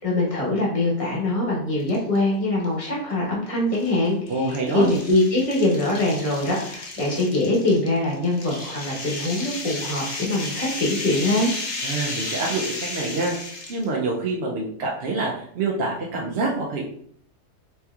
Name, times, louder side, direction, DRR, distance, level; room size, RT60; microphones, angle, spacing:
voice 1, 0.0-11.5, left 2 dB, 25° left, -3 dB, 1.0 m, -23 dB
sound 1, 1.8-2.2 2.6-2.7 3.7-13.9, left 2 dB, 55° left, 0.5 m, -33 dB
voice 2, 4.3-4.9 11.8-13.3 13.7-16.8, right 3 dB, 65° right, -3 dB, 0.6 m, -26 dB
4.2 x 2.9 x 2.3 m, 0.64 s
omnidirectional pair, 1.7 m